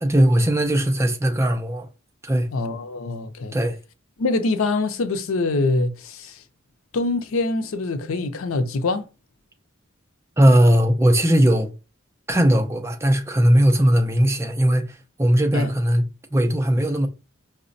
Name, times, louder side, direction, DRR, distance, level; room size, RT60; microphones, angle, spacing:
voice 1, 0.0-1.9 2.2-2.5 3.5-3.8 10.4-11.7 12.3-16.0 16.3-17.1, equal, 15° right, 0.4 m, -18 dB
voice 2, 2.5-3.5 4.2-6.4 6.9-9.0 15.5-15.7, left 3 dB, 80° left, 0.5 m, -24 dB
4.8 x 2.1 x 2.5 m
head